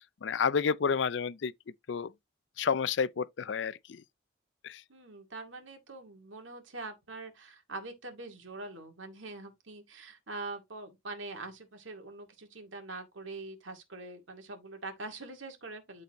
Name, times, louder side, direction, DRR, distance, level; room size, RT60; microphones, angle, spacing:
voice 1, 0.0-1.5 1.9-2.1 2.6-4.0 4.6-4.8, left 6 dB, 60° left, 0.4 m, -30 dB
voice 2, 4.9-16.0, right 2 dB, 75° right, 2.1 m, -44 dB
11.5 x 4.2 x 3.0 m
head